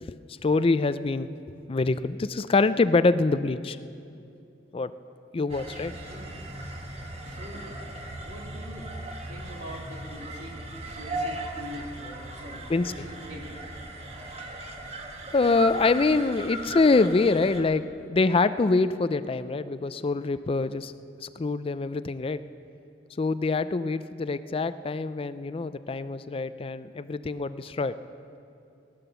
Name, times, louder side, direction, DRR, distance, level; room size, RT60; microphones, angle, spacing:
voice 1, 0.0-1.3 1.7-3.8 4.7-4.9 5.3-5.9 12.7-12.9 15.3-17.8 18.1-20.9 21.2-22.4 23.2-27.9, left 3 dB, 30° left, 13 dB, 0.4 m, -25 dB
sound 1, 5.5-17.6, right 1 dB, 35° right, 1.5 m, -38 dB
voice 2, 6.1-6.4 7.2-7.7 8.2-8.9 9.3-10.5 10.9-13.6, equal, 80° right, -1 dB, 2.9 m, -43 dB
18.5 x 11.0 x 6.9 m, 2.6 s
head